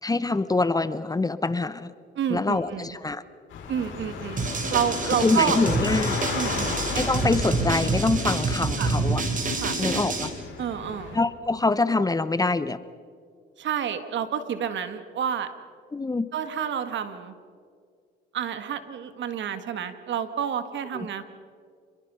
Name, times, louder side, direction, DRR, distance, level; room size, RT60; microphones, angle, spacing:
voice 1, 0.0-1.9 2.3-3.2 5.2-6.2 6.9-9.2 9.8-10.3 11.1-12.8 15.9-16.3 20.9-21.1, left 3 dB, 20° left, 14 dB, 0.9 m, -25 dB
voice 2, 2.1-2.9 3.7-4.4 4.7-5.6 6.3-6.8 8.8-8.9 9.6-9.8 10.6-11.2 13.6-15.5 16.3-17.3 18.3-21.2, right 8 dB, 70° right, 10 dB, 1.8 m, -29 dB
sound 1, 3.5-11.2, left 4 dB, 80° left, 6.0 m, -34 dB
sound 2, 4.4-10.3, right 3 dB, 40° right, 3.7 m, -27 dB
27.5 x 22.5 x 5.7 m, 2.2 s
cardioid pair, 90°, 20 cm